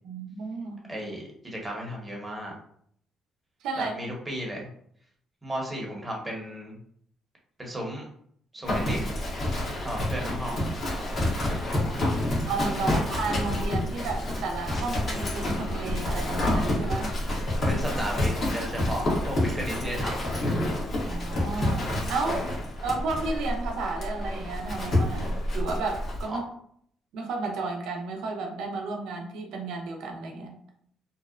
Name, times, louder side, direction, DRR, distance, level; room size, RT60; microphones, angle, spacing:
voice 1, 0.0-0.8 3.6-3.9 12.5-17.1 21.0-22.5 22.8-26.4 27.1-30.5, right 3 dB, 80° right, 2 dB, 0.5 m, -32 dB
voice 2, 0.9-2.5 3.8-4.7 5.4-6.8 7.6-8.1 8.5-9.1 9.8-10.6 12.7-13.0 17.7-20.2 26.3-26.4, equal, 15° right, -1 dB, 0.9 m, -34 dB
Livestock farm animals working animals, 8.6-26.2, left 1 dB, 50° left, 1.0 m, -28 dB
2.7 x 2.0 x 2.4 m, 0.65 s
cardioid pair, 95°, 0 cm